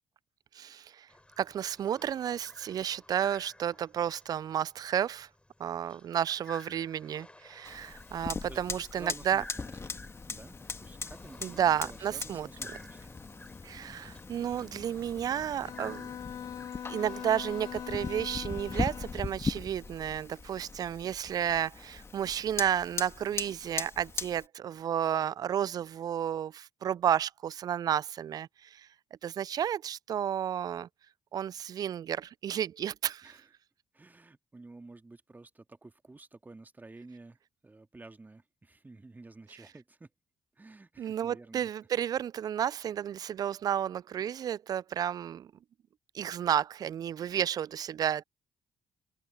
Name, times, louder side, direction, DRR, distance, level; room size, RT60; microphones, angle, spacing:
voice 1, 0.5-1.1 1.4-5.3 5.6-9.4 11.4-12.5 13.6-16.1 16.9-28.9 29.2-30.9 31.3-33.4 41.0-45.5 46.1-48.2, right 9 dB, 55° right, 0.4 m, -32 dB
sound 1, 1.1-17.9, left 1 dB, 15° left, 7.2 m, -54 dB
Fire, 7.6-24.5, left 4 dB, 35° left, 2.0 m, -40 dB
voice 2, 8.5-9.7 10.3-13.2 33.2-33.4 33.9-37.4 37.6-40.1 40.6-41.7, right 2 dB, 25° right, 2.2 m, -51 dB
Bowed string instrument, 15.6-19.3, left 9 dB, 50° left, 0.5 m, -41 dB
open air
hypercardioid pair, 45°, 8 cm